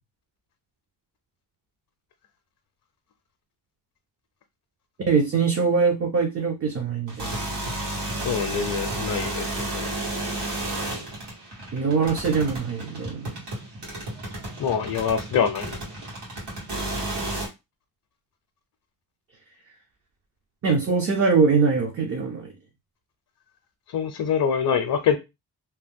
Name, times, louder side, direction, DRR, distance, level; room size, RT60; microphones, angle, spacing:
voice 1, 5.1-7.5 11.7-13.4 20.6-22.5, right 5 dB, 35° right, 0.5 m, -23 dB
sound 1, 7.1-17.5, right 1 dB, 85° right, 1.6 m, -32 dB
voice 2, 8.2-9.9 14.6-15.8 23.9-25.2, left 7 dB, 60° left, 0.5 m, -25 dB
2.8 x 2.1 x 3.5 m
wide cardioid pair, 160°, 40 cm